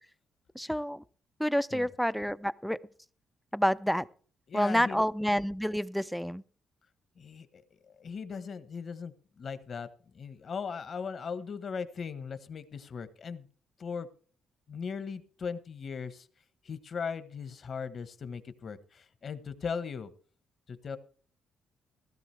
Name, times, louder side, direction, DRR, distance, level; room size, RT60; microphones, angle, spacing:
voice 1, 0.5-1.0 1.4-2.8 3.5-4.1 4.5-6.4, equal, ahead, 0.5 m, -28 dB
voice 2, 4.5-5.0 7.2-13.5 13.8-14.1 14.7-16.3 16.6-20.1 20.7-21.0, left 6 dB, 50° left, 1.2 m, -38 dB
16.0 x 13.0 x 3.4 m
cardioid pair, 90°, 0 cm